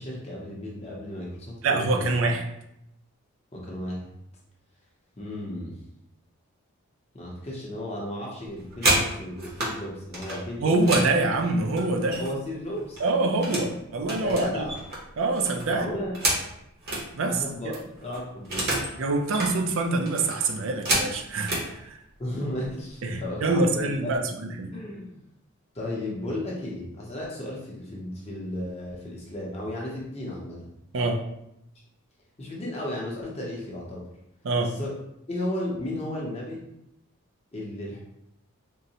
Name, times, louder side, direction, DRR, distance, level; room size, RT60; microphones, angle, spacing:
voice 1, 0.0-2.0 3.5-4.1 5.2-5.8 7.1-11.1 12.2-13.0 14.2-14.7 15.7-16.2 17.3-17.8 18.0-18.9 22.2-24.2 24.7-25.2 25.7-30.6 32.4-34.1 34.6-34.9 35.3-36.6 37.5-38.0, left 1 dB, 25° left, -4 dB, 0.6 m, -34 dB
voice 2, 1.6-2.4 10.6-12.2 13.0-14.7 15.2-15.9 17.1-17.7 19.0-22.0 23.0-24.7 30.9-31.2 34.4-34.7, right 2 dB, 60° right, 4 dB, 0.4 m, -25 dB
sound 1, 8.5-9.7 10.1-12.5 12.8-13.7 14.0-17.1 17.4-17.5 17.7-18.9 19.2-19.5 20.1-21.7 22.5-22.7 23.0-23.3 23.6-24.2, right 1 dB, 45° right, 0.8 m, -29 dB
3.7 x 2.1 x 2.7 m, 0.80 s
head